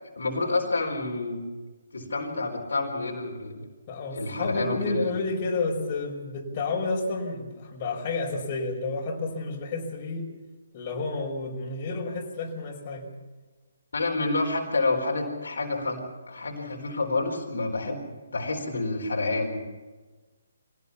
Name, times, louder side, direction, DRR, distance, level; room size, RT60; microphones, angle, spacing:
voice 1, 0.2-1.4 1.9-3.6 4.1-5.1 13.9-18.0 18.3-19.6, left 3 dB, 70° left, 1 dB, 4.2 m, -28 dB
voice 2, 3.9-10.3 10.7-13.1, left 3 dB, 35° left, 0 dB, 5.3 m, -31 dB
24.5 x 18.0 x 7.2 m, 1.3 s
figure-of-eight pair, 145°, 0 cm